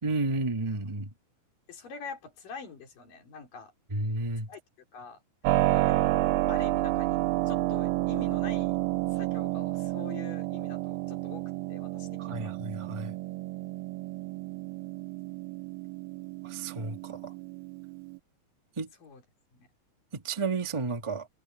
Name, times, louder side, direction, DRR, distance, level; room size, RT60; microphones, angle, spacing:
voice 1, 0.0-1.1 3.9-4.5 12.2-13.1 16.4-17.3 18.8-18.9 20.1-21.3, right 3 dB, 55° right, 0.3 m, -32 dB
voice 2, 1.7-3.7 4.5-4.6 4.9-5.2 5.7-6.1 6.5-7.2 7.5-8.7 9.1-12.5 19.0-19.2 19.5-19.7, left 5 dB, 75° left, 5.7 m, -45 dB
Keyboard (musical), 5.5-18.2, right 17 dB, 90° right, 2.4 m, -30 dB
omnidirectional pair, 3.9 m